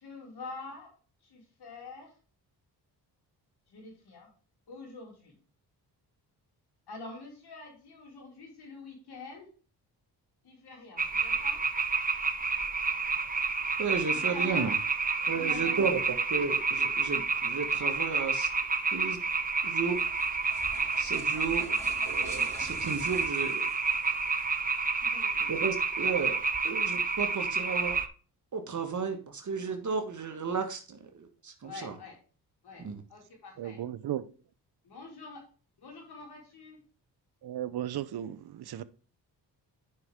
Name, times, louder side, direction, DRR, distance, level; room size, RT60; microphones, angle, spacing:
voice 1, 0.0-0.9 1.3-2.1 3.7-4.3 4.7-5.3 6.9-9.5 10.4-11.6 14.1-14.7 15.3-15.8 25.1-25.5 31.6-32.1 32.6-32.8 33.1-33.8 34.8-35.4 35.8-36.8, left 3 dB, 70° left, 4.7 m, -46 dB
sound 1, 11.0-28.1, right 4 dB, 20° right, 0.9 m, -29 dB
voice 2, 13.8-14.8 15.3-18.5 18.9-19.2 19.6-20.0 21.0-21.7 22.1-23.7 25.5-28.0 28.5-32.0 32.8-33.0, right 5 dB, 45° right, 1.5 m, -33 dB
sound 2, 19.5-24.4, right 1 dB, 5° left, 3.9 m, -47 dB
voice 3, 33.6-34.3 37.4-38.8, right 11 dB, 65° right, 0.8 m, -35 dB
9.5 x 5.5 x 3.6 m
cardioid pair, 80°, 41 cm